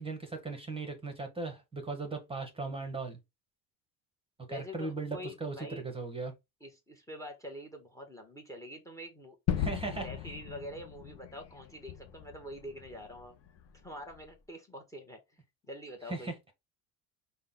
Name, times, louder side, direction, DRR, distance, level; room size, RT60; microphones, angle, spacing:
voice 1, 0.0-3.2 4.5-6.3 9.6-10.1 16.1-16.3, right 3 dB, 15° right, 1.0 m, -38 dB
voice 2, 4.5-5.8 6.6-9.4 10.0-13.3 13.8-15.2 15.7-16.3, equal, 10° left, 0.9 m, -45 dB
Gunshot gunfire / Fireworks / Boom, 9.5-14.3, left 9 dB, 40° left, 0.6 m, -38 dB
5.5 x 2.2 x 3.6 m
cardioid pair, 150°, 39 cm